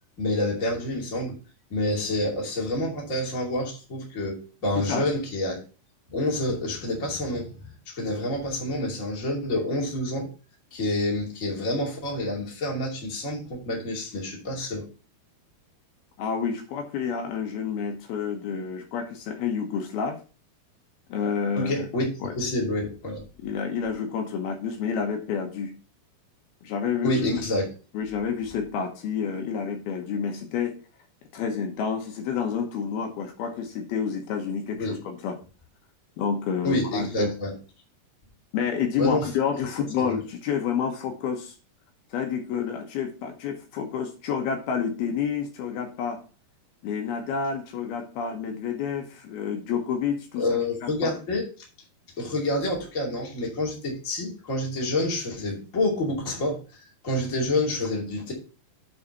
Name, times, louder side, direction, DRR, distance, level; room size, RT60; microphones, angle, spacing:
voice 1, 0.2-1.4 1.7-5.6 6.1-7.6 7.9-10.3 10.7-14.9 21.5-22.1 22.3-23.2 27.0-27.7 34.7-35.0 36.6-37.5 39.0-39.3 40.0-40.1 50.4-51.7 52.2-56.6 57.0-58.3, left 1 dB, 25° left, -1 dB, 2.4 m, -28 dB
voice 2, 16.2-20.2 21.1-21.9 22.2-22.3 23.4-25.7 26.6-27.2 27.9-30.8 31.3-35.4 36.2-37.3 38.5-41.6 42.1-46.2 46.8-50.4 50.8-51.2, left 7 dB, 75° left, 4 dB, 3.0 m, -29 dB
8.6 x 4.1 x 6.8 m, 0.34 s
omnidirectional pair, 4.6 m